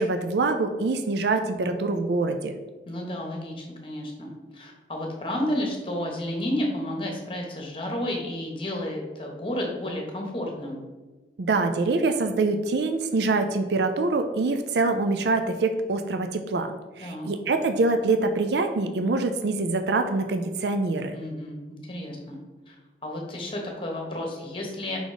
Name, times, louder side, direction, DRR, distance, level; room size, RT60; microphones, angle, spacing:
voice 1, 0.0-2.6 11.4-21.2, right 3 dB, 70° right, 7 dB, 0.4 m, -25 dB
voice 2, 2.9-10.8 17.0-17.3 21.1-22.4 22.7-22.8 23.0-25.0, left 1 dB, 30° left, 1 dB, 1.2 m, -31 dB
5.1 x 4.0 x 4.9 m, 1.3 s
head